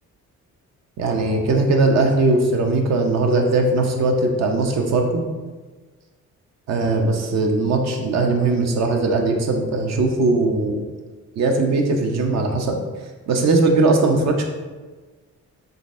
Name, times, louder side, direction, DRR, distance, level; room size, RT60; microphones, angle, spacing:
voice 1, 1.0-5.2 6.7-10.8 11.4-12.8 13.3-14.4, right 3 dB, 60° right, 3 dB, 0.7 m, -19 dB
3.8 x 3.3 x 2.5 m, 1.3 s
cardioid pair, 90°, 30 cm